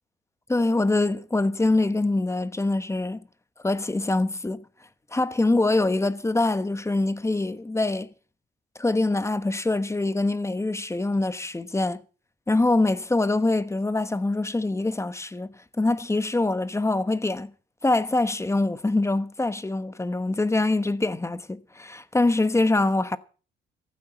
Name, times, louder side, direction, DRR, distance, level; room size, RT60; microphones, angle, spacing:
voice 1, 0.5-3.2 3.6-4.6 5.1-8.1 8.8-12.0 12.5-17.5 17.8-23.2, left 2 dB, 15° left, 1.1 m, -24 dB
15.0 x 8.7 x 7.6 m
cardioid pair, 90°, 20 cm